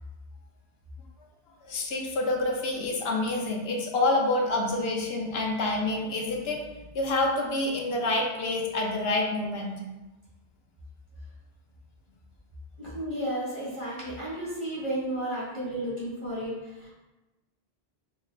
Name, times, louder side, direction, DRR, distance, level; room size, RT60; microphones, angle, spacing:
voice 1, 1.6-9.8 13.9-14.0, left 2 dB, 75° left, 1 dB, 0.9 m, -28 dB
voice 2, 12.8-16.9, right 1 dB, 50° right, -8 dB, 1.9 m, -33 dB
5.0 x 3.1 x 2.3 m, 1.1 s
omnidirectional pair, 1.1 m